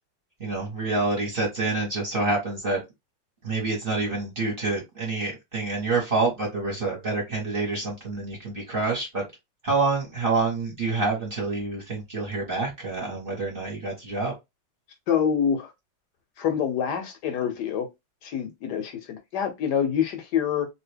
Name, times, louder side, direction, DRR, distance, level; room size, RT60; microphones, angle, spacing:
voice 1, 0.4-2.8 3.4-9.2 9.6-14.3, right 3 dB, 35° right, 1.1 m, -27 dB
voice 2, 15.1-15.7 16.4-17.9 18.2-20.7, left 8 dB, 70° left, 1.1 m, -26 dB
2.8 x 2.5 x 3.2 m
omnidirectional pair, 2.0 m